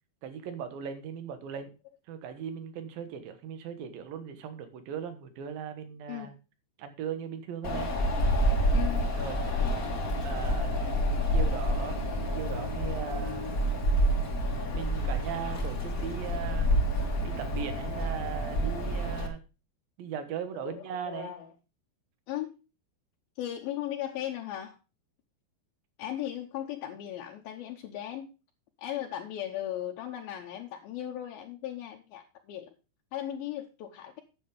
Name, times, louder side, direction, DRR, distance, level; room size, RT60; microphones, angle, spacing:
voice 1, 0.2-1.7 2.1-6.4 6.8-7.9 9.2-9.4 10.2-10.7 11.3-12.0 12.3-13.5 14.7-16.8 17.2-19.4 20.0-21.3, right 8 dB, 65° right, 10 dB, 2.8 m, -38 dB
Wind, 7.6-19.3, equal, 40° left, 1.2 m, -28 dB
voice 2, 20.6-21.5 22.3-22.6 23.4-24.8 26.0-28.3 28.8-32.7 33.1-34.2, left 12 dB, 75° left, 1 dB, 2.6 m, -37 dB
9.8 x 7.7 x 4.9 m, 0.31 s
omnidirectional pair, 4.7 m